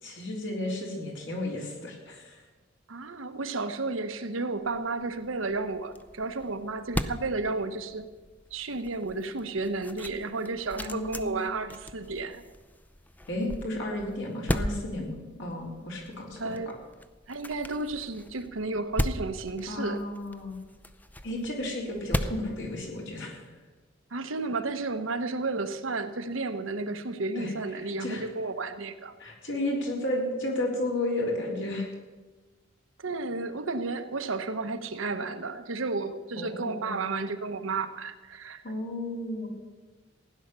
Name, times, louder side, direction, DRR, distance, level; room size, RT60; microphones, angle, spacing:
voice 1, 0.0-2.4 10.8-11.4 13.3-16.7 19.7-20.6 21.2-23.4 27.4-27.5 27.8-28.2 29.2-31.9 36.4-37.0 38.6-39.5, left 1 dB, 65° left, -1 dB, 3.7 m, -33 dB
voice 2, 2.9-8.1 8.5-12.4 16.4-16.7 17.3-20.0 24.1-29.1 33.0-38.6, right 3 dB, 90° right, 8 dB, 1.2 m, -32 dB
sound 1, 4.6-23.4, left 1 dB, 10° left, 0.6 m, -38 dB
16.0 x 10.5 x 6.8 m, 1.3 s
head